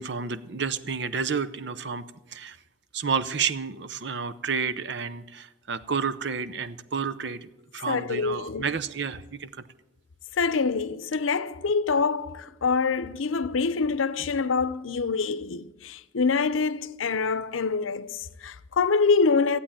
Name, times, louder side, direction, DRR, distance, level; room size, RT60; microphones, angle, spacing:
voice 1, 0.0-2.6 2.9-9.6, right 5 dB, 60° right, 0.6 m, -30 dB
voice 2, 7.9-8.7 10.4-19.6, left 4 dB, 90° left, 0.6 m, -25 dB
15.0 x 8.5 x 8.8 m
head